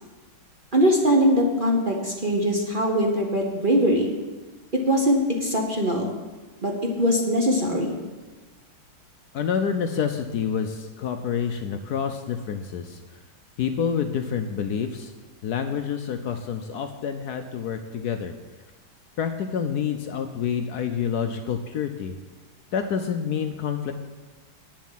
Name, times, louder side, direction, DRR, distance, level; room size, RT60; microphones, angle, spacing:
voice 1, 0.7-4.1 4.7-6.1 6.6-6.7 7.0-7.9, equal, 35° right, 1 dB, 0.9 m, -21 dB
voice 2, 9.3-13.0 13.6-15.1 15.4-18.3 19.2-22.2 22.7-23.9, left 7 dB, 75° left, 7 dB, 0.9 m, -28 dB
9.3 x 7.4 x 7.4 m, 1.3 s
omnidirectional pair, 2.3 m